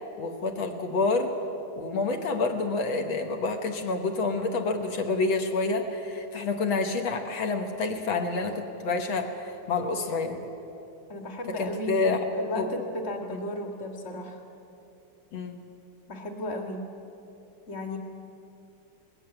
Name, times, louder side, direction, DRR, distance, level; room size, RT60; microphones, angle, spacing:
voice 1, 0.2-1.3 1.8-10.4 11.6-12.2 12.6-12.7 13.3-13.4 15.3-15.6, left 3 dB, 80° left, 4 dB, 2.1 m, -28 dB
voice 2, 11.1-14.4 16.1-16.8 17.7-18.0, left 1 dB, 35° left, 4 dB, 2.1 m, -34 dB
19.5 x 16.5 x 9.0 m, 2.9 s
omnidirectional pair, 2.2 m